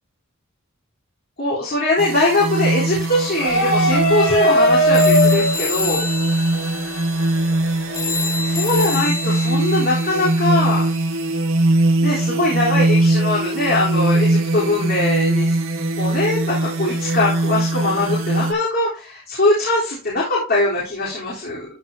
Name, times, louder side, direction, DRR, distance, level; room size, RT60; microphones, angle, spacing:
voice 1, 1.4-6.0 8.5-10.9 12.0-15.6 16.0-21.7, left 2 dB, 50° left, -6 dB, 3.9 m, -21 dB
sound 1, 2.0-18.5, right 2 dB, 85° right, 1.7 m, -21 dB
sound 2, 3.3-9.0, equal, 65° left, 5.2 m, -21 dB
sound 3, 4.9-11.1, left 4 dB, 15° left, 1.2 m, -29 dB
14.5 x 5.6 x 2.9 m, 0.33 s
head